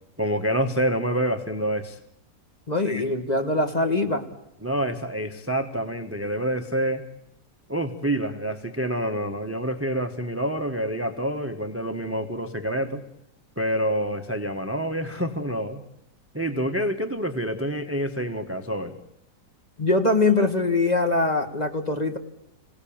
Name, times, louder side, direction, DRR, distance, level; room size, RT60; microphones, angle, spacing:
voice 1, 0.2-2.0 2.8-3.0 4.6-7.0 7.7-13.0 13.6-15.8 16.3-19.0, right 1 dB, 10° right, 8 dB, 1.0 m, -27 dB
voice 2, 2.7-4.3 19.8-22.2, left 2 dB, 25° left, 6 dB, 1.8 m, -22 dB
26.5 x 18.0 x 8.8 m, 0.81 s
omnidirectional pair, 1.9 m